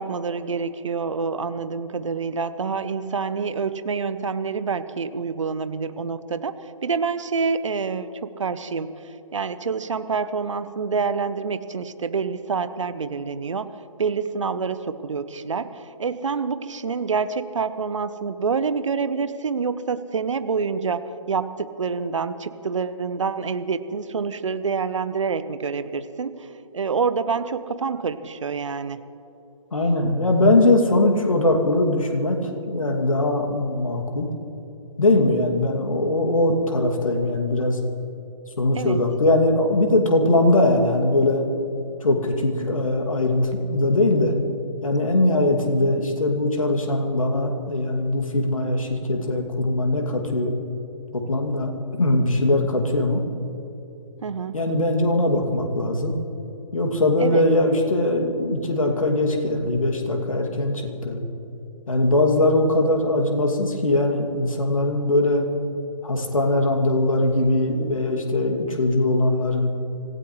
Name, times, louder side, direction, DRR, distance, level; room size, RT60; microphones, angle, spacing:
voice 1, 0.0-13.7 14.0-26.5 26.7-29.0 38.7-39.0 54.2-54.6 57.2-57.4, right 5 dB, 60° right, 13 dB, 0.9 m, -27 dB
voice 2, 29.7-32.4 32.7-34.3 35.0-37.8 38.6-41.4 42.0-44.3 44.8-50.5 51.1-51.7 52.0-53.2 54.5-56.1 56.7-61.2 61.9-65.4 66.0-69.7, left 2 dB, 70° left, 2 dB, 2.5 m, -21 dB
25.5 x 17.0 x 3.2 m, 2.9 s
figure-of-eight pair, 140°, 18 cm